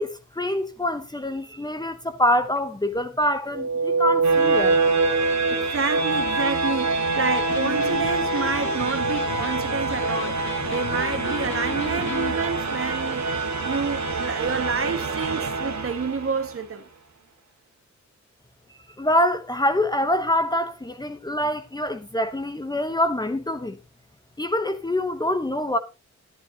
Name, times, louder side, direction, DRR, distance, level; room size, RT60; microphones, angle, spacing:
voice 1, 0.0-4.8 19.0-23.8 24.4-25.8, left 1 dB, 15° left, 0.9 m, -25 dB
sound 1, 3.5-16.5, right 3 dB, 75° right, 2.0 m, -25 dB
voice 2, 5.5-13.3 13.6-16.9, right 5 dB, 50° right, 1.7 m, -29 dB
Electric guitar, 7.4-12.4, left 7 dB, 45° left, 0.6 m, -35 dB
12.5 x 11.5 x 2.8 m
wide cardioid pair, 160°, 29 cm